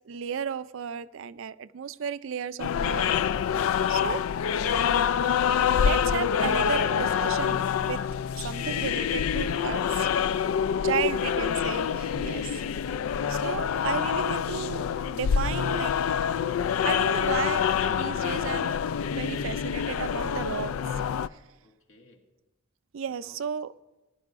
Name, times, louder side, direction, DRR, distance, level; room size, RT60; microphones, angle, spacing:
voice 1, 0.1-3.1 3.9-4.2 5.8-8.0 8.4-10.1 10.8-12.6 13.3-16.0 16.8-18.7 19.1-21.0 22.9-23.7, right 7 dB, 75° right, 15 dB, 0.4 m, -34 dB
sound 1, 2.6-21.3, left 8 dB, 90° left, 0.3 m, -26 dB
voice 2, 10.6-11.4 21.6-22.2 23.1-23.4, left 1 dB, 65° left, 1 dB, 2.0 m, -57 dB
20.5 x 11.0 x 2.5 m, 1.0 s
head